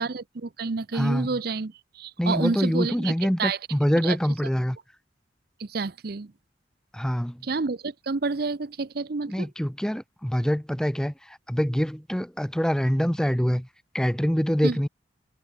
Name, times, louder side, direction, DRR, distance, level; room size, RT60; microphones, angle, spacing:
voice 1, 0.0-3.6 4.0-4.2 5.6-6.3 7.4-9.5 14.6-14.8, right 4 dB, 55° right, 0.7 m, -29 dB
voice 2, 0.9-1.3 2.2-4.8 6.9-7.4 9.3-13.7 13.9-14.9, equal, 5° left, 0.8 m, -25 dB
head